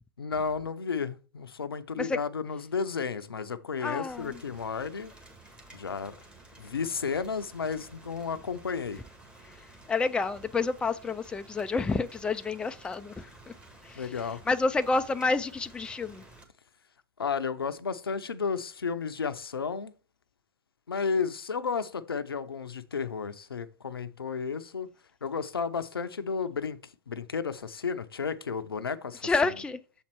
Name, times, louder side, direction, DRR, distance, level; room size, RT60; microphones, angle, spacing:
voice 1, 0.2-5.1 5.7-6.2 6.6-9.0 14.0-14.4 17.2-19.9 20.9-24.9 25.2-26.8 27.1-29.3, left 5 dB, 85° left, 0.6 m, -32 dB
voice 2, 3.8-4.4 9.9-13.5 13.8-14.0 14.5-16.2 29.2-29.8, left 3 dB, 10° left, 0.4 m, -29 dB
Rain, 4.1-16.4, right 2 dB, 10° right, 1.7 m, -53 dB
7.2 x 4.3 x 4.4 m
hypercardioid pair, 105°, 12 cm